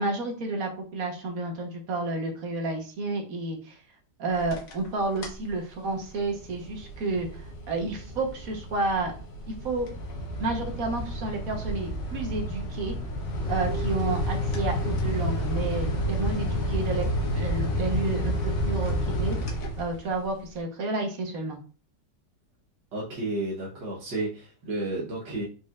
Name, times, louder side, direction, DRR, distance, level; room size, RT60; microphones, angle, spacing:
voice 1, 0.0-3.8 4.2-9.1 9.6-9.9 10.4-12.9 13.5-17.1 17.3-19.4 19.8-21.6, right 2 dB, 55° right, 2 dB, 1.4 m, -30 dB
sound 1, 4.3-4.9 5.2-5.5 5.9-20.2, equal, 55° left, 1.3 m, -30 dB
voice 2, 22.9-25.4, right 2 dB, 85° right, -5 dB, 1.8 m, -32 dB
4.7 x 4.3 x 2.4 m, 0.38 s
omnidirectional pair, 1.9 m